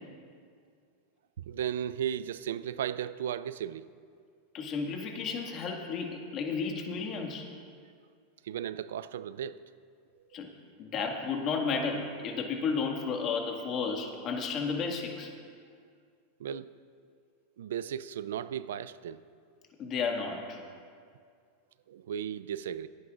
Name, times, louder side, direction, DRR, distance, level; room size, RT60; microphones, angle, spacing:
voice 1, 1.4-3.9 8.4-9.6 16.4-16.7 17.6-19.2 21.9-22.9, right 9 dB, 85° right, 16 dB, 0.3 m, -35 dB
voice 2, 4.5-7.5 10.3-10.5 10.8-15.3 19.8-20.6, left 5 dB, 40° left, 2 dB, 1.9 m, -32 dB
28.0 x 9.3 x 2.5 m, 2.2 s
supercardioid pair, 125°, 0 cm